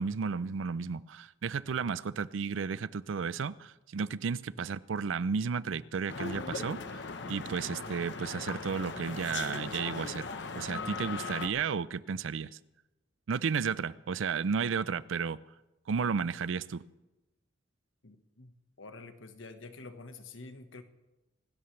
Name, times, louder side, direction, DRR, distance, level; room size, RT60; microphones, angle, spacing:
voice 1, 0.0-10.3 10.5-12.6 13.3-15.4 15.9-16.8, right 5 dB, 85° right, 0.5 m, -33 dB
sound 1, 6.1-11.5, left 4 dB, 65° left, 1.0 m, -39 dB
voice 2, 18.0-18.5 18.8-20.8, left 3 dB, 85° left, 1.3 m, -48 dB
25.5 x 12.5 x 3.3 m
head